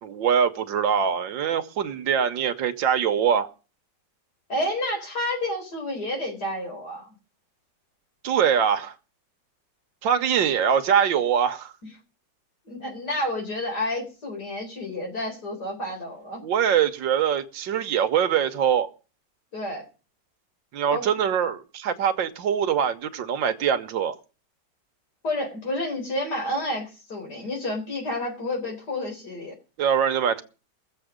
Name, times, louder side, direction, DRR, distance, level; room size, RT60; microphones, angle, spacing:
voice 1, 0.0-3.5 8.2-8.9 10.0-11.7 16.4-18.9 20.7-24.2 29.8-30.4, right 8 dB, 90° right, 1.8 m, -23 dB
voice 2, 4.5-7.1 12.7-16.4 19.5-19.9 20.9-21.1 25.2-29.5, left 1 dB, 60° left, 4.6 m, -30 dB
21.5 x 7.7 x 5.1 m
omnidirectional pair, 2.0 m